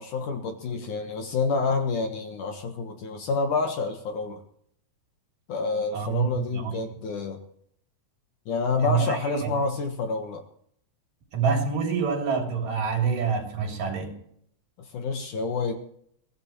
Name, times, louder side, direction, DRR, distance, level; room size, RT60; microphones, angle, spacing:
voice 1, 0.0-4.4 5.5-7.4 8.5-10.4 14.9-15.7, left 4 dB, 60° left, 2.5 m, -28 dB
voice 2, 5.9-6.7 8.8-9.5 11.3-14.1, right 6 dB, 60° right, 4.5 m, -26 dB
22.5 x 15.5 x 3.1 m
omnidirectional pair, 4.5 m